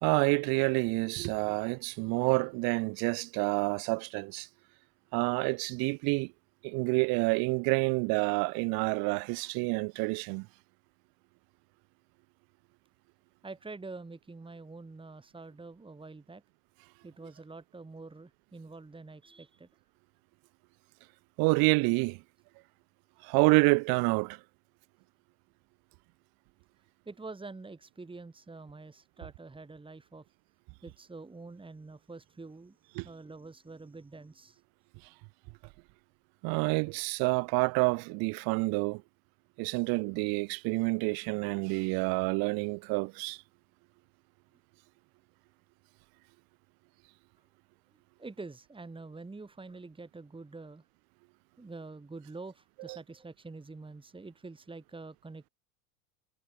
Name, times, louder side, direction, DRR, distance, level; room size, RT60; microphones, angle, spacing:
voice 1, 0.0-4.5 5.1-6.3 6.6-10.5 21.4-22.2 23.2-24.4 33.0-33.1 36.4-39.0 39.6-43.4, right 30 dB, 55° right, 1.1 m, -28 dB
voice 2, 13.4-16.4 17.0-19.7 27.1-30.3 30.8-34.6 48.2-50.8 51.6-55.5, right 3 dB, 10° right, 4.2 m, -46 dB
hypercardioid pair, 100°, 43 cm